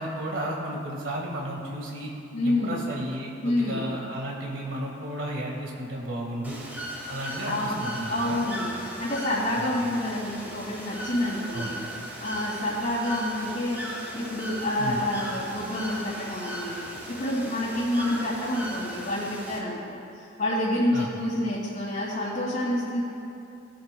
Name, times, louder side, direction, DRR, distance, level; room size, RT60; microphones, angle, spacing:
voice 1, 0.0-2.1 2.4-6.6 7.1-8.4 9.6-9.9 11.5-11.8 14.8-15.0 20.9-21.1, right 1 dB, 90° right, -2 dB, 1.8 m, -33 dB
voice 2, 2.3-2.8 3.4-3.9 7.5-7.8 8.1-11.8 12.2-13.8 14.1-23.0, left 1 dB, 55° left, -11 dB, 2.5 m, -28 dB
Bird / Water, 6.4-19.6, equal, 10° right, 1.4 m, -38 dB
18.0 x 8.7 x 2.3 m, 2.7 s
head